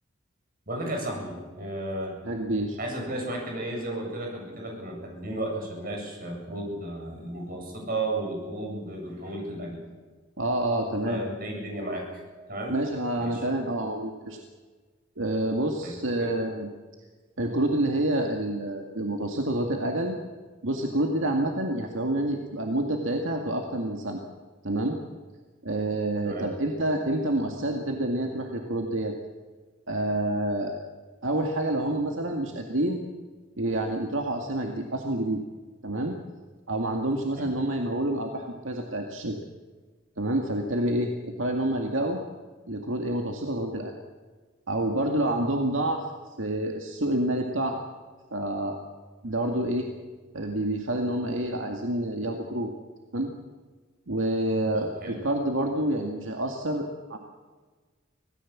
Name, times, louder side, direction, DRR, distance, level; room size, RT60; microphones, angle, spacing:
voice 1, 0.7-2.2 2.8-9.8 11.0-12.8 13.2-13.4 15.8-16.3 26.2-26.5 37.4-37.5 52.2-52.4 54.7-55.2, right 1 dB, 45° right, 1 dB, 7.8 m, -34 dB
voice 2, 2.3-2.8 10.4-11.2 12.7-14.4 15.2-16.7 17.4-20.2 20.6-24.2 24.6-25.0 25.6-29.2 29.9-30.7 31.2-33.0 33.6-35.4 35.8-36.1 36.7-39.4 40.2-42.2 42.7-44.0 44.7-46.0 46.4-47.8 48.3-48.8 49.2-49.9 50.3-52.7 53.1-53.3 54.1-57.2, right 1 dB, 75° right, 2 dB, 2.1 m, -28 dB
25.5 x 18.0 x 7.4 m, 1.4 s
head